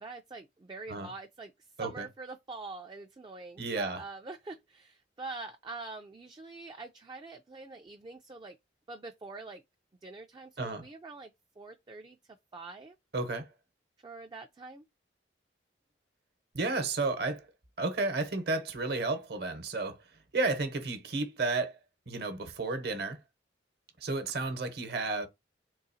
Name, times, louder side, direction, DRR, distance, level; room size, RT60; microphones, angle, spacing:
voice 1, 0.0-1.5 1.8-8.6 8.9-9.6 10.0-11.3 11.6-13.0 14.0-14.8, right 3 dB, 25° right, 0.3 m, -45 dB
voice 2, 3.6-4.0 10.6-10.8 13.1-13.5 16.5-17.5 17.8-20.0 20.3-21.8 22.1-23.2 24.0-25.3, right 3 dB, 60° right, 0.8 m, -32 dB
3.8 x 2.7 x 2.6 m
head